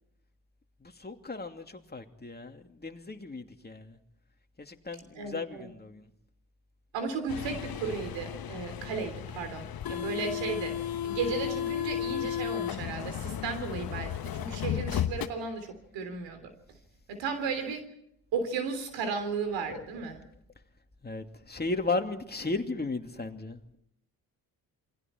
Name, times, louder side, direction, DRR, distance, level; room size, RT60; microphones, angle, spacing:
voice 1, 0.8-4.0 4.6-6.0 19.7-19.8 21.0-23.6, left 3 dB, 20° left, 5 dB, 2.7 m, -35 dB
voice 2, 5.1-5.7 6.9-16.5 17.1-17.8 18.3-20.2, right 5 dB, 75° right, 8 dB, 3.5 m, -35 dB
sound 1, 7.3-15.3, left 10 dB, 50° left, 1.2 m, -34 dB
28.5 x 23.0 x 4.5 m, 0.76 s
hypercardioid pair, 45°, 45 cm